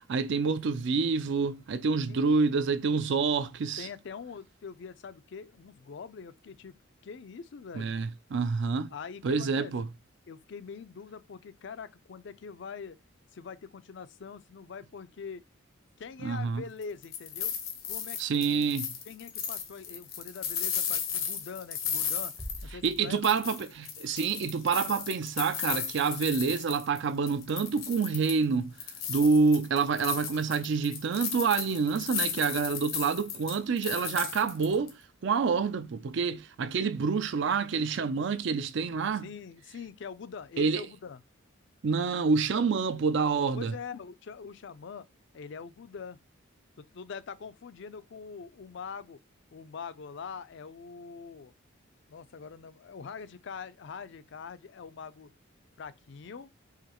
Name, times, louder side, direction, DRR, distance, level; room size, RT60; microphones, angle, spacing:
voice 1, 0.0-3.9 7.7-8.9 9.2-9.9 16.2-16.6 18.2-18.9 22.8-28.7 29.1-35.0 35.2-39.3 40.6-40.8 41.8-43.7, right 5 dB, 60° right, 0.4 m, -27 dB
voice 2, 3.8-6.8 7.0-8.0 8.9-9.7 10.3-13.0 13.3-15.4 16.0-17.6 17.8-18.2 18.5-18.7 19.1-23.3 39.2-41.2 43.6-45.1 45.3-46.2 46.8-49.2 49.5-51.5 52.1-55.3 55.8-56.5, left 5 dB, 60° left, 0.4 m, -43 dB
sound 1, 16.8-23.0 23.2-27.0 27.3-28.4 28.8-34.9, left 7 dB, 85° left, 1.0 m, -35 dB
sound 2, 22.4-24.3, equal, 5° right, 0.5 m, -45 dB
4.9 x 3.1 x 2.9 m
head